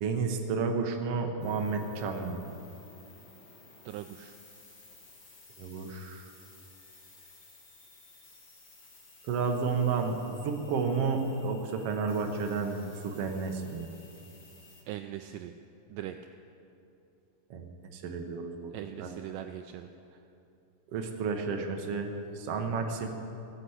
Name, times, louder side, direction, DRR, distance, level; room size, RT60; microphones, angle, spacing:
voice 1, 0.0-2.4 5.6-6.3 9.2-13.9 17.5-17.7 17.9-18.7 19.0-19.1 20.9-23.1, right 4 dB, 75° right, 4 dB, 1.4 m, -31 dB
sound 1, 1.4-14.8, left 3 dB, 40° left, 1.8 m, -56 dB
voice 2, 3.9-4.4 14.9-15.5 15.9-16.2 18.7-20.2, right 12 dB, 90° right, 7 dB, 1.9 m, -41 dB
16.0 x 10.0 x 8.0 m, 2.8 s
omnidirectional pair, 4.4 m